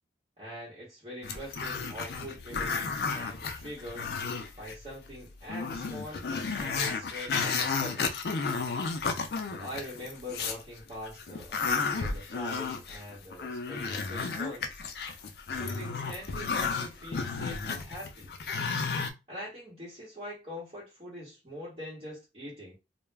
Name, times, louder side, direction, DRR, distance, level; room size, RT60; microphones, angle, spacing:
voice 1, 0.4-4.1 4.6-6.3 6.5-8.1 9.4-14.8 15.5-18.3 19.3-22.8, equal, 35° right, 1.0 m, -43 dB
Growling, 1.2-4.7 5.1-5.2 5.5-10.6 11.0-19.1, left 5 dB, 60° left, 0.4 m, -33 dB
2.2 x 2.0 x 3.3 m
head